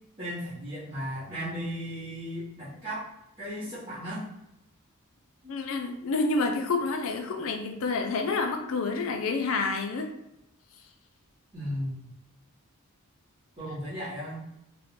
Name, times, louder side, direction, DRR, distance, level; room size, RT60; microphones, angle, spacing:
voice 1, 0.2-3.1 3.4-4.2 5.5-5.6 11.5-12.1 13.6-14.4, equal, 30° right, -11 dB, 0.7 m, -35 dB
voice 2, 5.5-10.1, left 3 dB, 65° left, 5 dB, 0.4 m, -28 dB
2.4 x 2.1 x 2.9 m, 0.87 s
head